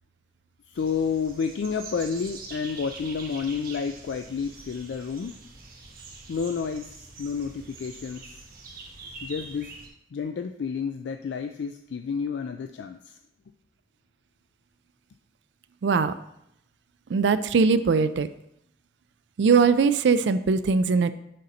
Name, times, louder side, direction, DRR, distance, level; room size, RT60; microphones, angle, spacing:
voice 1, 0.7-5.3 6.3-8.4 9.2-9.7 10.1-13.2, left 6 dB, 80° left, 7 dB, 0.4 m, -30 dB
sound 1, 0.7-9.9, right 3 dB, 50° right, 1.2 m, -44 dB
voice 2, 15.8-16.1 17.1-18.3 19.4-21.1, right 5 dB, 80° right, 13 dB, 0.4 m, -21 dB
6.5 x 4.2 x 5.3 m, 0.78 s
head